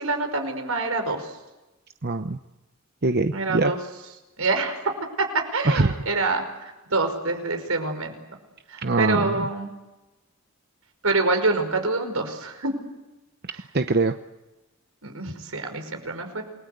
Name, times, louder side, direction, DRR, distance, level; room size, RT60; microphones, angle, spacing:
voice 1, 0.0-1.4 3.3-3.8 4.4-4.8 5.2-8.2 8.7-9.7 11.0-12.7 15.0-16.4, right 3 dB, 80° right, 6 dB, 5.4 m, -26 dB
voice 2, 2.0-2.4 3.0-3.7 5.7-6.0 8.8-9.5 13.4-14.2, right 3 dB, 50° right, 8 dB, 0.9 m, -23 dB
28.5 x 21.5 x 8.2 m, 1.0 s
head